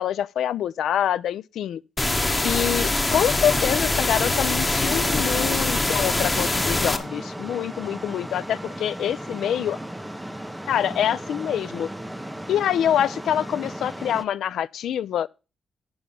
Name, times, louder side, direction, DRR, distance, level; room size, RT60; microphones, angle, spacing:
voice 1, 0.0-1.8 2.4-9.8 10.7-11.9 12.5-15.3, left 10 dB, 90° left, 0.4 m, -25 dB
sound 1, 2.0-7.0, left 2 dB, 20° left, 0.9 m, -23 dB
sound 2, 4.7-14.3, right 1 dB, 5° right, 0.5 m, -36 dB
8.7 x 6.1 x 5.3 m
wide cardioid pair, 145°, 0 cm